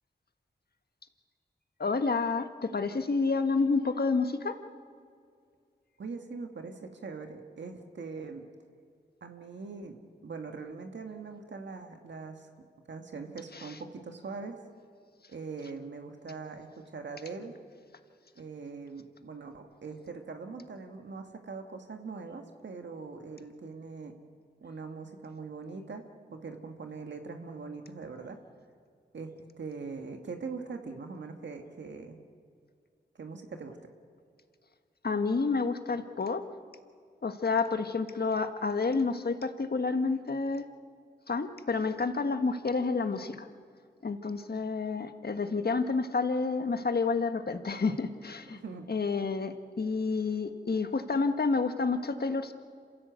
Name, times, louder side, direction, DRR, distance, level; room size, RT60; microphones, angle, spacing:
voice 1, 1.8-4.6 13.5-13.8 35.0-36.4 37.2-40.6 41.3-43.5 44.0-48.6 48.9-52.5, left 4 dB, 60° left, 8 dB, 1.4 m, -29 dB
voice 2, 6.0-8.5 9.2-10.0 10.2-12.5 12.9-14.6 15.3-17.6 18.3-24.1 24.6-28.4 29.1-32.2 33.2-33.8 48.5-48.9, right 4 dB, 80° right, 4 dB, 1.7 m, -42 dB
27.0 x 15.5 x 8.2 m, 2.2 s
cardioid pair, 45°, 18 cm